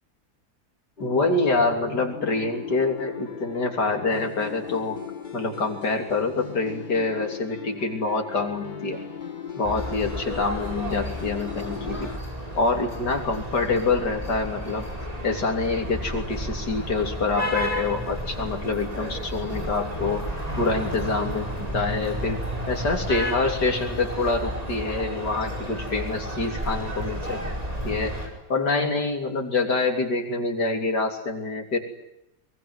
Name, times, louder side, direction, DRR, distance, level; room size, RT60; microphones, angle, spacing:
voice 1, 1.0-5.0 5.3-9.0 9.6-12.1 12.6-14.9 15.2-20.2 20.6-27.4 27.8-28.2 28.5-31.8, left 3 dB, 90° left, 4 dB, 3.8 m, -26 dB
sound 1, 1.0-12.2, left 6 dB, 30° left, 1.5 m, -38 dB
sound 2, 9.6-28.3, equal, 20° right, 4.8 m, -32 dB
23.5 x 21.0 x 9.7 m, 0.85 s
omnidirectional pair, 1.8 m